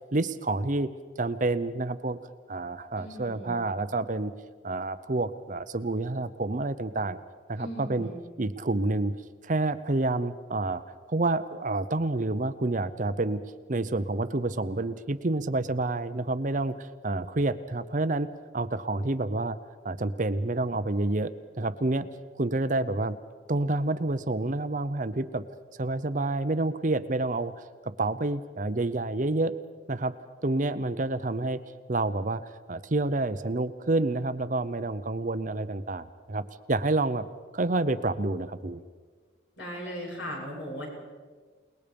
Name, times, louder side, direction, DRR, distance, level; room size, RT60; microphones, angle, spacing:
voice 1, 0.1-0.9 1.2-2.2 2.5-4.3 4.6-7.2 7.5-8.1 8.4-9.2 9.4-10.8 11.1-13.4 13.7-18.3 18.5-19.6 19.8-21.3 21.6-22.1 22.4-23.1 23.5-25.4 25.8-29.5 29.9-30.2 30.4-31.6 31.9-36.4 36.7-37.2 37.5-38.8, right 2 dB, 40° right, 12 dB, 0.7 m, -28 dB
voice 2, 2.9-3.7 7.6-8.2 39.6-40.9, equal, 65° left, -3 dB, 7.9 m, -38 dB
29.0 x 20.0 x 5.3 m, 1.5 s
head